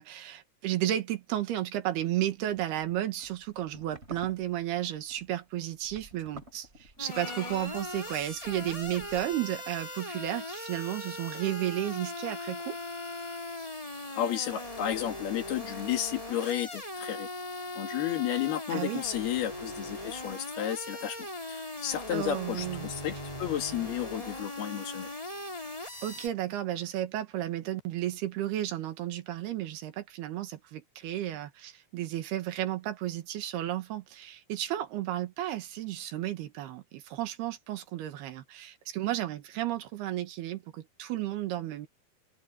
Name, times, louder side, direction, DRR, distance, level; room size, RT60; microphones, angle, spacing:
voice 1, 0.0-12.8 18.7-19.0 22.1-22.9 26.0-41.9, right 13 dB, 80° right, 3.6 m, -33 dB
sound 1, 2.5-9.5, right 1 dB, 15° right, 6.8 m, -51 dB
sound 2, 7.0-26.3, left 1 dB, 10° left, 3.6 m, -40 dB
Bowed string instrument, 7.1-13.4, left 3 dB, 35° left, 4.2 m, -47 dB
voice 2, 14.2-17.3 17.8-25.1, left 11 dB, 75° left, 4.1 m, -32 dB
omnidirectional pair, 4.5 m